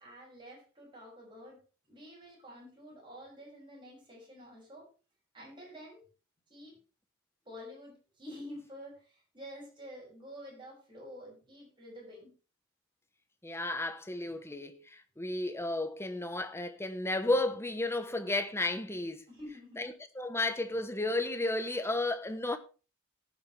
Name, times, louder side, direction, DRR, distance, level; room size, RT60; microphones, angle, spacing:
voice 1, 0.0-1.6 1.9-4.9 5.3-6.0 6.5-6.8 7.4-12.3 19.3-19.8, equal, 20° right, 6.5 m, -49 dB
voice 2, 13.4-19.2 19.8-22.6, left 2 dB, 10° left, 1.0 m, -33 dB
18.5 x 7.4 x 3.3 m
head